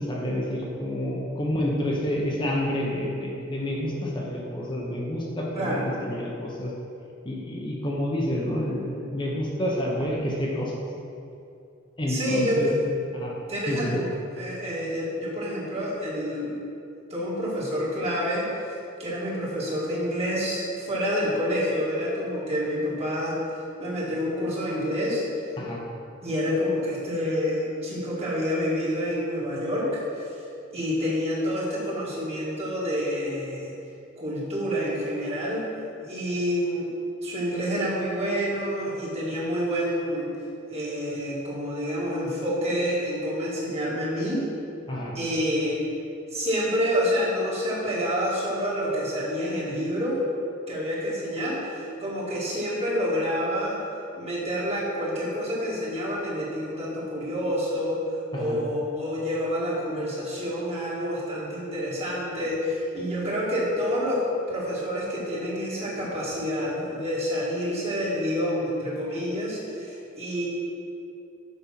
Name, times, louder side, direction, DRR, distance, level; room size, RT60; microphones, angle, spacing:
voice 1, 0.0-6.7 7.2-10.7 12.0-12.7 13.1-13.3 13.7-14.0 25.6-25.8 44.9-45.1 58.3-58.6, left 1 dB, 25° left, -3 dB, 1.0 m, -29 dB
voice 2, 5.5-5.9 12.1-12.7 13.5-14.1 14.3-16.6 17.1-18.5 19.0-23.4 23.8-25.2 26.2-30.3 30.7-33.8 34.2-35.7 36.0-36.9 37.2-40.3 40.7-44.4 45.1-45.8 46.3-50.2 50.7-53.8 54.2-58.0 58.3-70.5, equal, 30° right, -6 dB, 2.0 m, -28 dB
7.0 x 5.3 x 5.9 m, 2.6 s
head